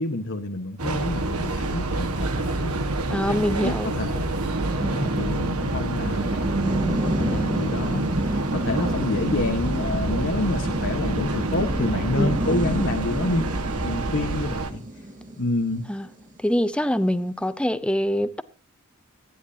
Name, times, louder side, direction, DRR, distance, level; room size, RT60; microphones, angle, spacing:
voice 1, 0.0-2.8 3.3-4.2 4.8-13.4 13.8-14.8 15.4-15.8, left 2 dB, 60° left, 1.3 m, -28 dB
Train, 0.8-14.7, right 2 dB, 90° right, 1.6 m, -28 dB
sound 1, 1.6-16.6, right 1 dB, 40° right, 4.5 m, -31 dB
voice 2, 3.1-3.9 12.2-12.4 15.9-16.1 16.4-18.4, equal, 5° left, 0.8 m, -24 dB
25.0 x 11.0 x 2.8 m
head